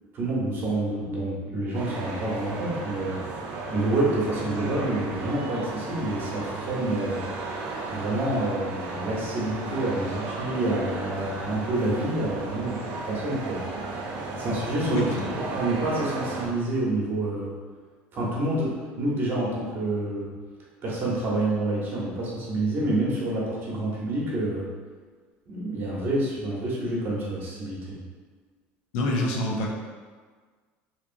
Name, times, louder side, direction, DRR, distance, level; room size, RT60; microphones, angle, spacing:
voice 1, 0.1-3.2 3.7-7.2 7.9-13.6 14.3-17.5 18.1-20.3 20.8-24.7 25.5-28.0, right 1 dB, 45° right, -5 dB, 0.9 m, -28 dB
sound 1, 1.7-16.5, right 3 dB, 60° right, 0.5 m, -34 dB
voice 2, 14.9-15.3 28.9-29.7, left 1 dB, 80° left, -1 dB, 0.5 m, -26 dB
2.9 x 2.4 x 2.5 m, 1.5 s
supercardioid pair, 120°, 5 cm